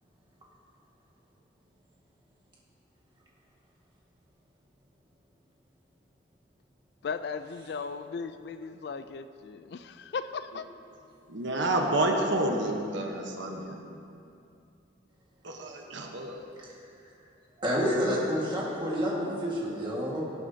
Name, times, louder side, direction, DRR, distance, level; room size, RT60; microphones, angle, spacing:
voice 1, 7.0-10.7, left 5 dB, 55° left, 11 dB, 0.3 m, -37 dB
voice 2, 11.3-13.7 15.4-16.4, right 1 dB, 75° right, 2 dB, 1.0 m, -29 dB
voice 3, 17.6-20.2, equal, 25° right, -5 dB, 1.7 m, -29 dB
17.0 x 8.1 x 2.8 m, 2.6 s
head